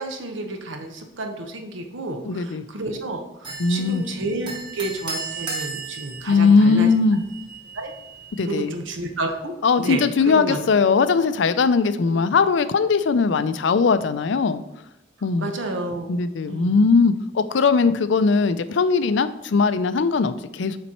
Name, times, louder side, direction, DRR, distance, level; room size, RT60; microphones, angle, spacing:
voice 1, 0.0-6.9 7.7-7.9 8.5-10.6 15.4-16.1 16.5-16.7, right 2 dB, 80° right, 4 dB, 1.0 m, -30 dB
voice 2, 2.2-2.7 3.6-4.0 6.3-7.2 8.4-8.7 9.6-14.6 15.2-15.5 16.1-20.8, left 4 dB, 70° left, 12 dB, 0.4 m, -19 dB
sound 1, 3.4-9.3, right 4 dB, 25° right, 1.6 m, -36 dB
7.1 x 4.3 x 4.3 m, 0.85 s
head